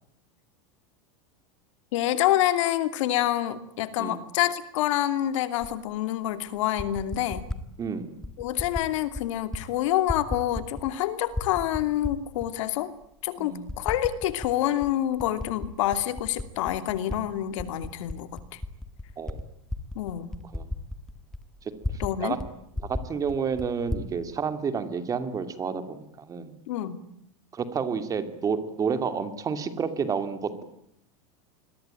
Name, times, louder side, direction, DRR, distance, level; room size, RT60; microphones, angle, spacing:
voice 1, 1.9-7.5 8.4-12.9 13.2-18.6 19.9-20.3 22.0-22.4 26.7-27.0, left 13 dB, 70° left, 11 dB, 2.8 m, -27 dB
Typing, 5.6-5.7 6.6-7.6 8.2-8.9 9.1-9.6 9.9-11.0 11.3-12.5 13.0-13.1 13.7-14.5 14.8-17.2 17.5-22.1 22.4-22.5 22.7-24.1, left 2 dB, 5° left, 1.7 m, -34 dB
voice 2, 7.8-8.2 13.4-13.7 19.2-19.4 20.5-20.6 21.6-22.4 22.8-26.6 27.5-30.6, right 6 dB, 20° right, 10 dB, 2.7 m, -30 dB
27.0 x 22.0 x 9.1 m, 0.74 s
supercardioid pair, 150°, 17 cm